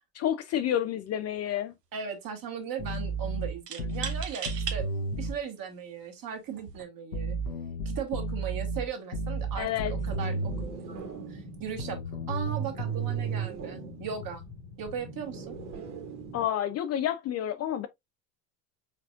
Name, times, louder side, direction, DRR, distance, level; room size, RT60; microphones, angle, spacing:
voice 1, 0.1-1.7 9.6-9.9 16.3-17.9, left 11 dB, 35° left, 0.5 m, -29 dB
sound 1, 0.5-0.8 1.1-1.7 3.7-4.8 5.5-5.6 6.5-6.8, right 7 dB, 85° right, 0.9 m, -38 dB
voice 2, 1.9-4.9 5.2-7.4 8.0-12.0 12.3-14.5 14.8-15.6, right 7 dB, 45° right, 1.9 m, -38 dB
sound 2, 2.8-5.4 7.1-10.7 11.8-13.5, right 3 dB, 85° left, 1.3 m, -32 dB
sound 3, 9.4-16.5, right 1 dB, 70° right, 2.0 m, -42 dB
5.1 x 4.1 x 2.4 m
figure-of-eight pair, 65°, 47 cm